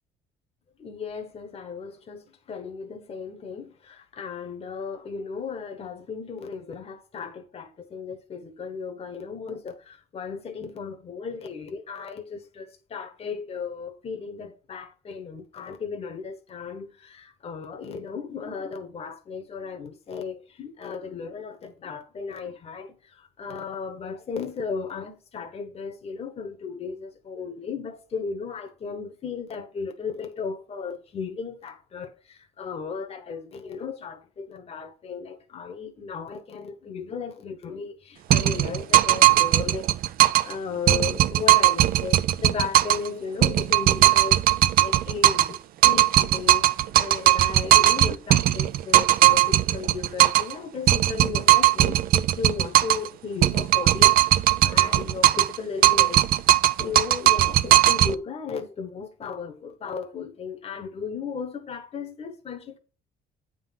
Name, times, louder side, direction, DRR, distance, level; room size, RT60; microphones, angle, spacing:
voice 1, 0.8-39.9 40.4-44.4 44.8-45.6 45.8-46.7 47.0-56.2 56.8-62.8, left 5 dB, 35° left, 1.0 m, -35 dB
sound 1, 38.3-40.5 40.9-43.1 43.4-45.6 45.8-50.5 50.9-53.1 53.4-55.6 55.8-58.1, right 14 dB, 60° right, 0.4 m, -19 dB
8.7 x 3.8 x 5.7 m
cardioid pair, 110°, 17 cm